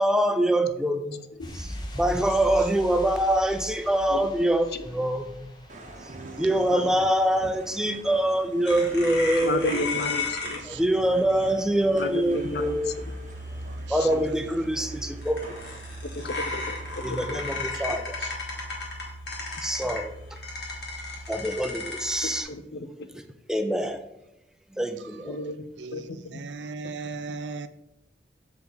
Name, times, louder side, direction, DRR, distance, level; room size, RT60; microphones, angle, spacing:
voice 1, 0.0-1.2 1.5-5.5 6.4-9.8 10.7-12.9 13.9-15.4 17.0-18.2 19.6-20.1 21.3-22.5 23.5-24.0 24.7-25.4, right 1 dB, 5° right, 7 dB, 0.4 m, -25 dB
sound 1, 1.4-8.3, equal, 25° left, 0.9 m, -41 dB
sound 2, 5.7-17.0, right 1 dB, 45° right, 0.9 m, -46 dB
voice 2, 6.0-7.1 10.4-11.7 13.6-14.7 17.7-18.3 25.0-25.5 25.8-27.7, right 4 dB, 85° right, 12 dB, 0.5 m, -40 dB
sound 3, 8.7-22.4, left 3 dB, 80° left, 1.9 m, -35 dB
voice 3, 9.4-10.6 11.9-12.8 14.0-14.1 16.2-16.8 17.3-17.4 22.2-23.1 25.3-25.6 25.9-26.4, left 1 dB, 60° left, 11 dB, 0.5 m, -32 dB
6.7 x 4.8 x 4.0 m, 0.84 s
head